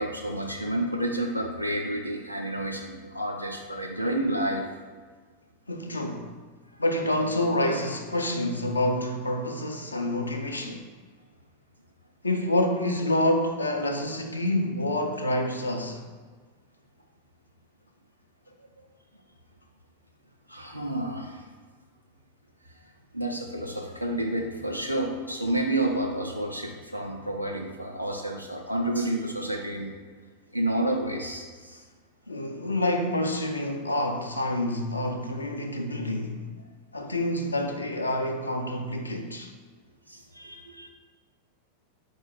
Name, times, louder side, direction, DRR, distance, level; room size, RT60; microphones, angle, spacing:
voice 1, 0.0-4.7 18.5-18.6 20.5-21.4 22.8-30.0 30.5-31.8 40.1-40.9, right 1 dB, 90° right, 0.6 m, -30 dB
voice 2, 5.7-6.3 6.8-10.8 12.2-16.0 32.3-36.4 36.9-39.5, left 1 dB, 80° left, 0.5 m, -27 dB
4.7 x 2.3 x 4.6 m
figure-of-eight pair, 90°, 0 cm